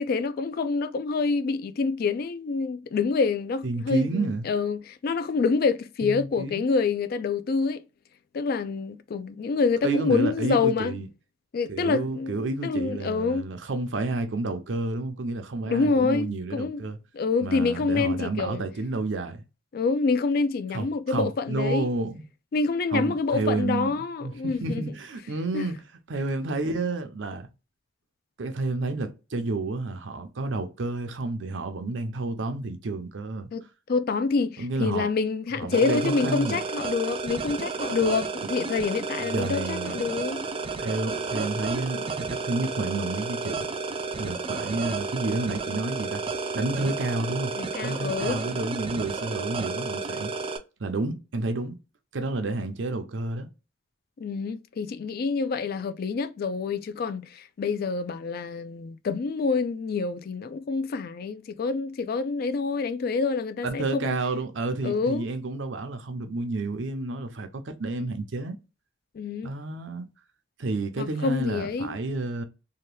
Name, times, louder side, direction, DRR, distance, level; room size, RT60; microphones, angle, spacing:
voice 1, 0.0-7.8 8.3-10.9 11.5-13.5 15.7-16.8 17.1-18.6 19.7-21.9 22.5-24.8 25.5-25.6 33.5-40.4 41.3-41.5 47.6-48.4 54.2-64.2 64.8-65.2 69.2-69.5 71.0-72.0, left 4 dB, 50° left, 0.3 m, -27 dB
voice 2, 3.6-4.5 6.0-6.6 9.8-11.1 11.7-17.0 17.4-19.4 20.7-22.2 22.9-25.8 26.1-27.5 28.4-33.5 34.6-35.1 35.6-36.6 39.2-40.0 40.8-43.7 44.2-46.2 46.5-47.5 47.8-50.3 50.8-51.8 52.1-53.5 63.6-68.6 69.4-70.1 70.6-72.4, right 2 dB, 75° right, 0.6 m, -30 dB
sound 1, 35.7-50.6, right 4 dB, 30° right, 0.4 m, -32 dB
2.8 x 2.2 x 3.2 m
head